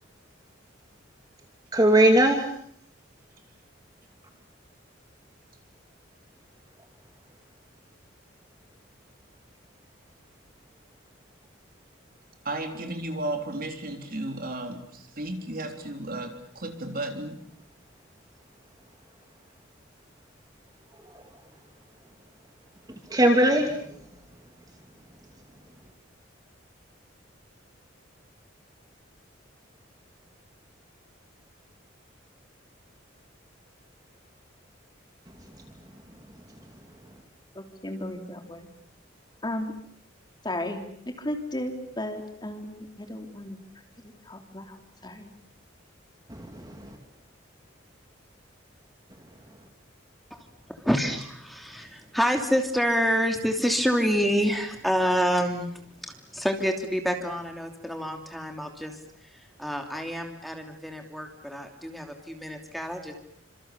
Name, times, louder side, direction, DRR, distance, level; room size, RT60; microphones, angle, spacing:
voice 1, 1.7-2.5 23.1-23.7 46.3-47.0, right 1 dB, 20° right, 4 dB, 2.6 m, -20 dB
voice 2, 12.4-17.4, right 1 dB, 45° right, 5 dB, 3.8 m, -34 dB
voice 3, 37.5-38.7 39.4-39.7 40.4-43.6 44.0-44.8 45.0-45.3, left 1 dB, 20° left, 5 dB, 3.3 m, -35 dB
voice 4, 50.3-59.0 59.3-63.1, equal, ahead, 4 dB, 2.9 m, -28 dB
30.0 x 27.0 x 7.0 m, 0.65 s
head